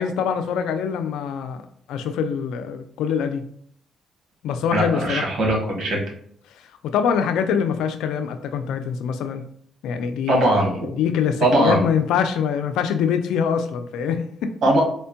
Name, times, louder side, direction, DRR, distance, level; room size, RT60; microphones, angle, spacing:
voice 1, 0.0-1.6 1.9-3.4 4.4-5.3 6.8-9.4 9.8-10.5 11.0-14.5, left 7 dB, 85° left, 9 dB, 0.3 m, -24 dB
voice 2, 4.7-6.0 10.3-10.9 11.4-11.8 14.6-14.8, right 1 dB, 60° right, -1 dB, 1.4 m, -20 dB
4.3 x 2.1 x 2.7 m, 0.64 s
cardioid pair, 90°, 0 cm